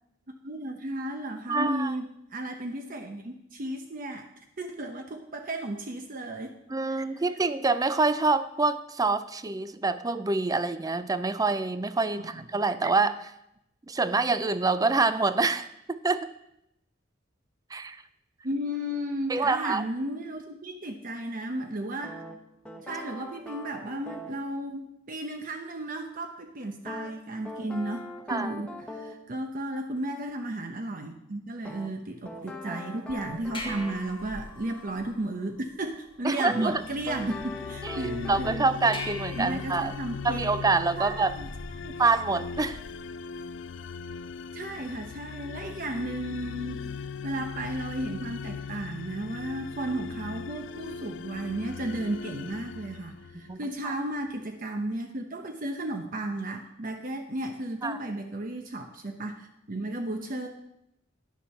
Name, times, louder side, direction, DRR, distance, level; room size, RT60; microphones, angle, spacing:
voice 1, 0.4-4.3 4.6-6.5 6.9-7.2 12.2-12.4 18.4-22.1 22.8-28.0 28.3-38.7 39.3-40.5 41.0-41.5 41.8-42.0 44.5-46.8 47.2-60.5, right 1 dB, 45° right, 4 dB, 0.8 m, -34 dB
voice 2, 1.5-1.9 6.7-13.3 13.9-16.3 17.7-18.0 19.3-19.8 28.3-28.5 32.7-32.8 36.2-36.8 37.8-39.9 40.2-41.3 42.0-42.8 53.5-53.9 57.8-58.0, right 3 dB, 20° right, 12 dB, 0.5 m, -26 dB
sound 1, 22.0-24.4 26.9-29.2 31.6-34.0 36.5-36.7 37.1-38.5, left 1 dB, 5° left, 1.2 m, -41 dB
sound 2, 33.1-43.1, left 2 dB, 25° left, 1.4 m, -44 dB
sound 3, 36.6-53.7, left 6 dB, 70° left, 0.4 m, -39 dB
10.5 x 7.3 x 5.7 m, 0.82 s
head